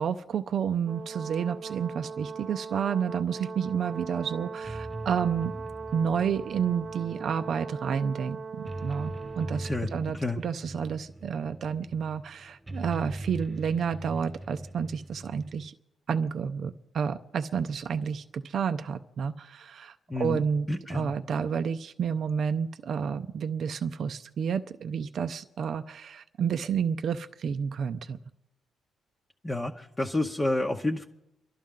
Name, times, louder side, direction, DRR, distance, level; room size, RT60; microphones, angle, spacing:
voice 1, 0.0-5.6 5.9-15.7 16.1-28.2, right 7 dB, 55° right, 8 dB, 0.5 m, -30 dB
Brass instrument, 0.8-9.8, right 5 dB, 40° right, 0.9 m, -40 dB
sound 1, 3.8-15.7, right 1 dB, 20° right, 1.4 m, -41 dB
voice 2, 20.1-21.1 29.4-31.0, left 2 dB, 20° left, 1 dB, 0.9 m, -29 dB
30.0 x 11.5 x 3.7 m, 0.90 s
cardioid pair, 90°, 0 cm